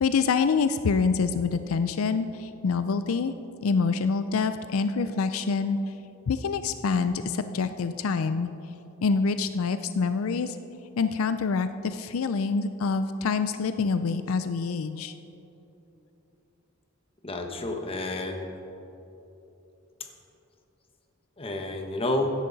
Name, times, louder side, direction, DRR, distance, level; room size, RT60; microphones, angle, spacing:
voice 1, 0.0-3.3 3.6-5.8 6.3-8.5 9.0-10.6 11.0-15.1, left 5 dB, 85° left, 11 dB, 0.4 m, -26 dB
voice 2, 17.2-18.5 21.4-22.3, left 2 dB, 30° left, 3 dB, 1.1 m, -30 dB
16.0 x 10.5 x 4.0 m, 3.0 s
head